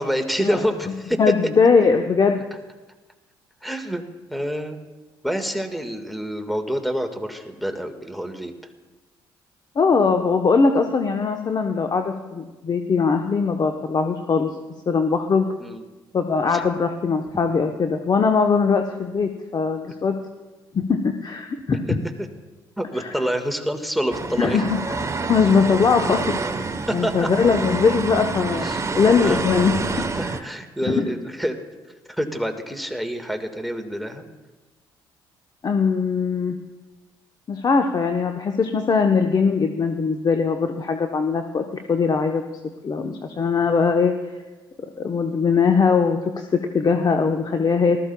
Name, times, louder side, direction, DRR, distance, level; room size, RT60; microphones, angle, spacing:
voice 1, 0.0-1.2 3.6-4.0 4.3-4.8 5.2-8.5 15.6-15.8 16.5-16.6 22.8-24.6 26.9-27.3 28.6-28.9 29.2-29.4 29.9-31.6 32.1-34.2, equal, ahead, 6 dB, 1.7 m, -27 dB
voice 2, 1.2-2.4 9.8-14.5 14.9-15.5 16.1-20.2 20.7-22.0 23.0-23.1 24.4-25.0 25.2-28.7 29.0-29.8 30.8-31.1 35.6-36.6 37.5-42.4 42.8-44.1 45.0-48.0, left 5 dB, 40° left, 5 dB, 0.9 m, -21 dB
sound 1, 24.1-30.4, right 3 dB, 30° right, 1.0 m, -28 dB
19.0 x 13.5 x 2.3 m, 1.2 s
hypercardioid pair, 50°, 10 cm